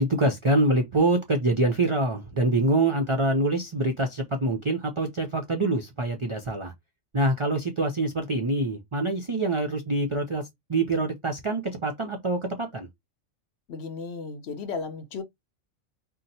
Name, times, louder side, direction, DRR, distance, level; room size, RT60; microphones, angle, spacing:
voice 1, 0.0-6.7 7.1-12.9, right 2 dB, 55° right, 0.3 m, -25 dB
voice 2, 13.7-15.2, left 4 dB, 65° left, 0.9 m, -34 dB
2.8 x 2.1 x 3.9 m
omnidirectional pair, 1.3 m